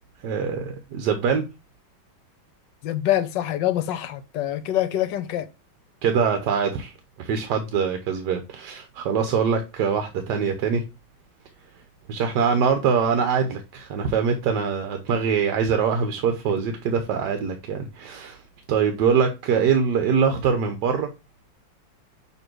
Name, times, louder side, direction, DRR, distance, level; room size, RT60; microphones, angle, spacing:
voice 1, 0.2-1.4 6.0-10.8 12.1-18.4 18.7-21.1, right 6 dB, 65° right, 1.3 m, -23 dB
voice 2, 2.8-5.5, left 12 dB, 70° left, 1.2 m, -25 dB
6.9 x 3.0 x 4.6 m
omnidirectional pair, 2.2 m